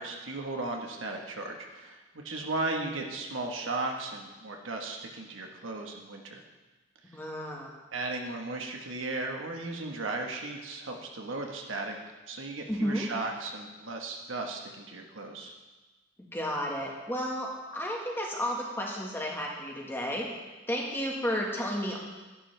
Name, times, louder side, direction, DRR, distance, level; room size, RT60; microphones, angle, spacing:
voice 1, 0.0-6.4 7.9-12.0 12.3-15.5, right 2 dB, 85° right, 2 dB, 1.3 m, -36 dB
voice 2, 7.1-7.7 12.7-13.1 16.3-20.3 20.7-22.0, equal, 10° left, -1 dB, 1.5 m, -32 dB
11.0 x 10.5 x 3.3 m, 1.2 s
head